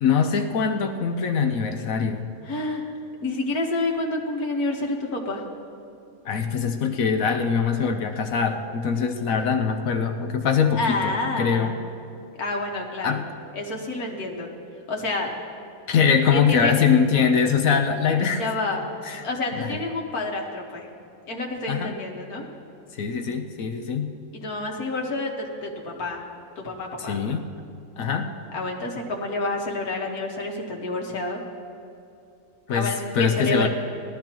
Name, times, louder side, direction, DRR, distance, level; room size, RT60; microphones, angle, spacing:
voice 1, 0.0-2.3 6.2-11.7 13.0-13.3 15.9-18.4 19.0-19.2 19.5-19.8 21.7-21.9 23.0-24.2 27.0-27.5 28.0-28.3 32.7-32.9 33.1-33.7, left 6 dB, 70° left, 6 dB, 1.1 m, -23 dB
voice 2, 2.5-2.9 3.2-5.4 10.7-11.8 12.4-13.2 13.5-14.5 14.9-15.3 16.3-16.7 18.4-18.8 19.2-20.9 21.3-22.4 24.3-26.3 26.6-27.2 28.5-31.4 32.7-33.7, left 2 dB, 90° left, 1 dB, 1.9 m, -28 dB
20.0 x 13.0 x 3.0 m, 2.7 s
omnidirectional pair, 1.5 m